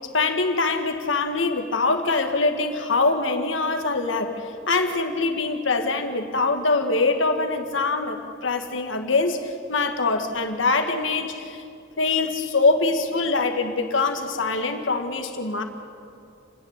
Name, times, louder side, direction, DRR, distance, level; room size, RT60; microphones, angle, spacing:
voice 1, 0.0-11.6 12.0-15.6, left 3 dB, 70° left, 6 dB, 1.9 m, -24 dB
29.5 x 10.0 x 9.7 m, 2.5 s
head